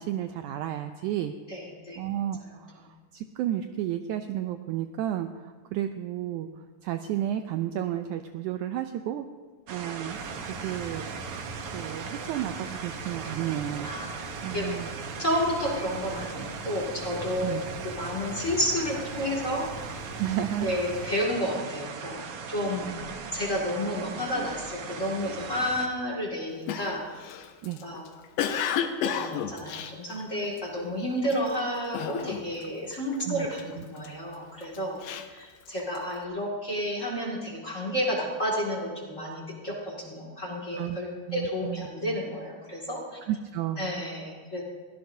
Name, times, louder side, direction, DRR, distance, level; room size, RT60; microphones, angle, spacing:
voice 1, 0.0-1.3 2.0-9.3 9.7-10.2 10.5-11.0 11.7-14.1 14.4-14.9 17.4-17.6 20.2-20.7 27.6-27.8 33.2-33.5 33.8-33.9 40.8-41.0 41.3-41.9 43.3-43.8, right 12 dB, 80° right, 8 dB, 1.8 m, -32 dB
voice 2, 1.5-2.0 2.4-2.5 2.8-2.9 13.8-14.1 14.5-14.9 15.2-17.6 17.8-19.7 20.6-22.2 22.5-27.1 27.8-28.0 29.0-35.0 35.3-43.2 43.8-44.6, equal, 25° left, -2 dB, 2.1 m, -31 dB
sound 1, 9.7-25.9, right 5 dB, 65° right, 1.5 m, -39 dB
sound 2, 10.1-21.1, right 2 dB, 40° right, 5.5 m, -43 dB
Cough, 26.7-30.8 31.2-31.6 31.9-32.7 32.9-34.1 34.6-36.1, left 8 dB, 75° left, 2.4 m, -32 dB
22.5 x 17.0 x 2.7 m, 1.4 s
omnidirectional pair, 3.9 m